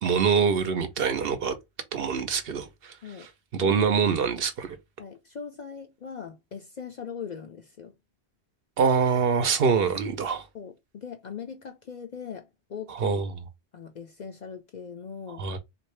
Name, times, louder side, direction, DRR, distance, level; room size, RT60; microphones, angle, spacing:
voice 1, 0.0-1.5 1.9-4.8 8.8-10.5 12.9-13.4 15.4-15.6, right 6 dB, 65° right, 0.8 m, -25 dB
voice 2, 5.0-7.9 10.5-13.2 13.7-15.4, left 6 dB, 55° left, 0.5 m, -40 dB
3.5 x 2.6 x 3.1 m
omnidirectional pair, 1.1 m